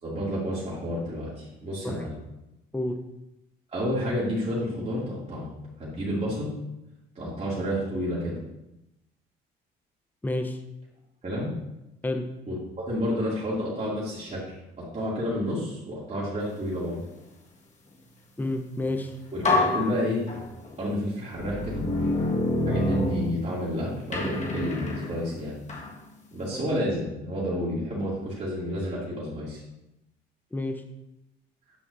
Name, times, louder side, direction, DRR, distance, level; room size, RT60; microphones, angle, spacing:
voice 1, 0.0-2.2 3.7-5.5 5.8-6.5 7.1-8.4 11.2-11.5 12.5-17.0 19.3-20.2 20.8-21.9 22.7-25.5 26.3-29.6, equal, 35° right, -7 dB, 2.7 m, -30 dB
voice 2, 10.2-10.6 12.0-12.2 18.4-19.1 26.5-26.6 30.5-30.8, left 2 dB, 10° left, 5 dB, 0.8 m, -29 dB
sound 1, 18.9-19.0 19.4-20.7 21.4-23.7 24.1-25.9, left 2 dB, 35° left, 1.7 m, -27 dB
9.3 x 5.9 x 2.7 m, 0.91 s
supercardioid pair, 85°, 20 cm